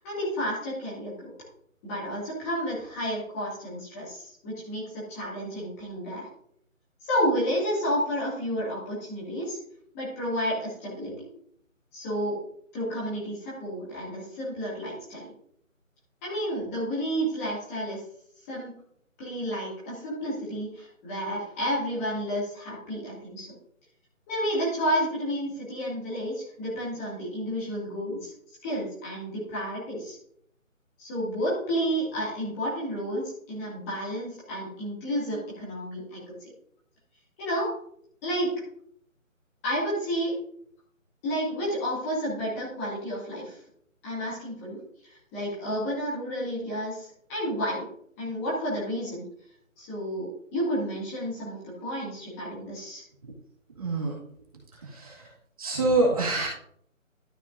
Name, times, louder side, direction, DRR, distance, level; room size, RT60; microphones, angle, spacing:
voice 1, 0.0-1.3 1.8-6.3 7.0-9.6 9.9-11.3 11.9-12.4 12.7-15.3 16.2-18.0 18.5-18.7 19.2-23.5 24.3-28.3 28.6-30.2 31.0-36.5 37.4-37.8 38.2-38.6 39.6-40.4 41.2-43.6 44.0-47.9 48.2-49.2 49.8-53.0, equal, 10° left, -7 dB, 2.2 m, -31 dB
voice 2, 53.8-54.1 54.8-55.3 55.6-56.5, right 2 dB, 25° right, -4 dB, 2.1 m, -26 dB
12.5 x 8.5 x 2.6 m, 0.65 s
figure-of-eight pair, 155°, 41 cm